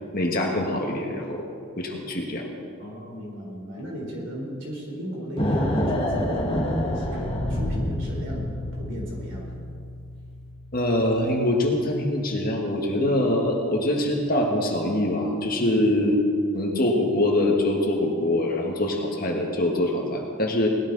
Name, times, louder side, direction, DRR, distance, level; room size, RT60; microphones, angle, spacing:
voice 1, 0.1-1.4 1.8-2.5 10.7-16.1 16.5-20.7, left 1 dB, 40° left, 0 dB, 1.9 m, -24 dB
voice 2, 2.8-9.6 15.6-15.9, equal, 55° right, -2 dB, 4.2 m, -36 dB
sound 1, 5.4-9.1, equal, 25° left, 1.7 m, -26 dB
sound 2, 7.1-12.4, left 2 dB, 35° right, 4.6 m, -37 dB
19.5 x 13.5 x 4.2 m, 2.3 s
head